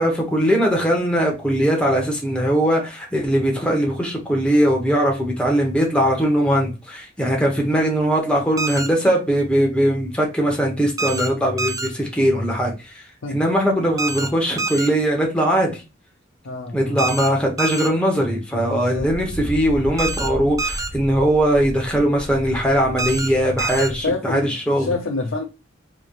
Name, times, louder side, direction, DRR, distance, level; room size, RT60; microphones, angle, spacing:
voice 1, 0.0-13.0 13.3-15.8 16.7-24.9, equal, 5° left, 1.0 m, -20 dB
sound 1, 8.6-8.9 11.0-11.3 11.6-11.9 14.0-14.3 14.6-14.9 17.0-17.3 17.6-17.9 20.0-20.3 20.6-20.9 23.0-23.3 23.6-23.9, right 3 dB, 20° right, 0.3 m, -25 dB
voice 2, 16.4-17.0 18.7-19.1 24.0-25.4, left 3 dB, 70° left, 0.6 m, -27 dB
sound 2, 19.0-24.1, equal, 50° right, 0.8 m, -34 dB
4.0 x 3.1 x 2.4 m
head